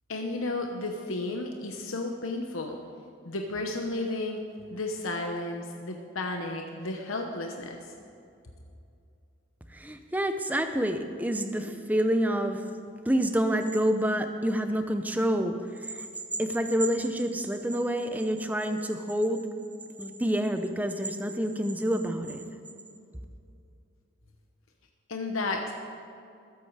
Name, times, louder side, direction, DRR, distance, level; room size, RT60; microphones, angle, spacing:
voice 1, 0.1-2.8 3.2-4.4 4.7-7.9 25.1-25.7, left 2 dB, 85° left, 3 dB, 1.0 m, -33 dB
voice 2, 9.7-12.6 13.0-16.1 16.4-19.4 20.0-22.4, equal, 10° right, 7 dB, 0.6 m, -28 dB
20.5 x 8.2 x 4.8 m, 2.5 s
head